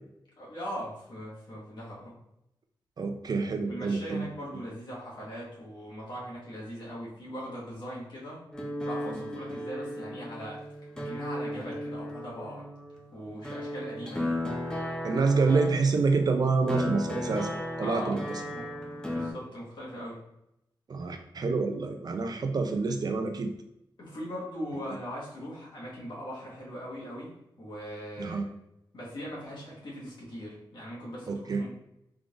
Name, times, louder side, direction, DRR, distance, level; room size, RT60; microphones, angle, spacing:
voice 1, 0.4-2.1 3.6-8.4 8.8-10.6 10.9-12.7 13.1-14.4 17.8-18.8 19.1-20.2 24.0-27.3 27.6-28.5 28.9-31.7, equal, 65° left, -6 dB, 1.4 m, -40 dB
voice 2, 3.0-4.3 15.0-17.5 17.8-18.2 20.9-23.5 28.2-28.5 31.3-31.6, right 4 dB, 50° right, 6 dB, 0.4 m, -27 dB
sound 1, 8.5-19.3, left 1 dB, 10° left, 0.6 m, -35 dB
3.7 x 3.5 x 2.4 m, 0.84 s
wide cardioid pair, 115°, 8 cm